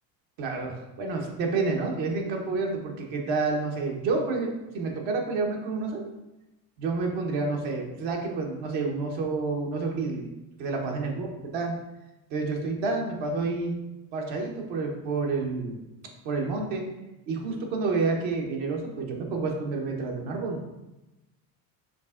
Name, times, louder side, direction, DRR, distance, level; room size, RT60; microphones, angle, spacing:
voice 1, 0.4-6.0 6.8-10.3 10.6-11.3 11.5-11.7 12.3-13.7 14.1-15.8 16.2-16.8 17.3-20.7, right 3 dB, 65° right, 1 dB, 1.1 m, -29 dB
5.2 x 3.4 x 2.4 m, 1.0 s
hypercardioid pair, 75°, 49 cm